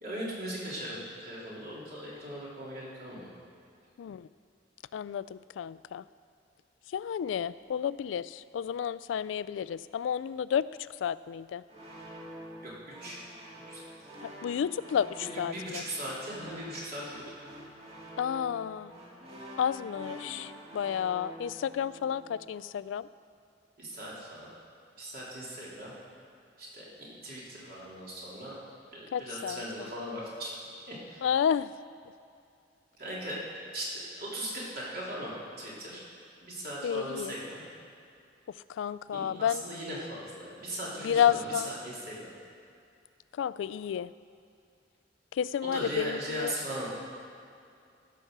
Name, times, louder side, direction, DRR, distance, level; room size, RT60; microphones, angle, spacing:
voice 1, 0.0-3.3 12.6-12.7 13.0-13.2 13.7-13.8 15.2-17.2 23.8-24.5 25.0-25.9 26.6-28.6 28.9-30.5 30.9-31.3 33.0-33.4 33.7-36.0 36.4-37.6 39.1-42.3 45.6-46.9, right 1 dB, 55° right, -6 dB, 3.4 m, -39 dB
voice 2, 4.0-4.3 4.9-6.0 6.9-11.6 14.2-15.8 18.2-18.9 19.6-23.1 29.1-29.6 31.2-31.7 36.8-37.3 38.5-39.6 41.0-41.7 43.3-44.1 45.3-46.5, left 8 dB, 85° left, 18 dB, 0.3 m, -31 dB
sound 1, 11.7-22.6, equal, 35° right, 1.9 m, -47 dB
15.0 x 6.0 x 6.7 m, 2.4 s
head